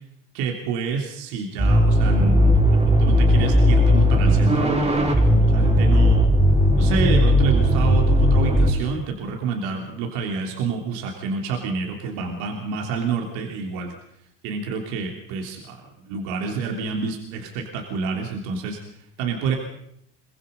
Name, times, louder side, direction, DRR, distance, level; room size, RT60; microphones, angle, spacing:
voice 1, 0.3-6.2 6.8-13.9 14.4-19.6, right 5 dB, 75° right, 2 dB, 3.4 m, -28 dB
sound 1, 1.6-8.7, equal, 20° right, 5.2 m, -17 dB
23.5 x 20.5 x 5.5 m, 0.74 s
supercardioid pair, 115°, 29 cm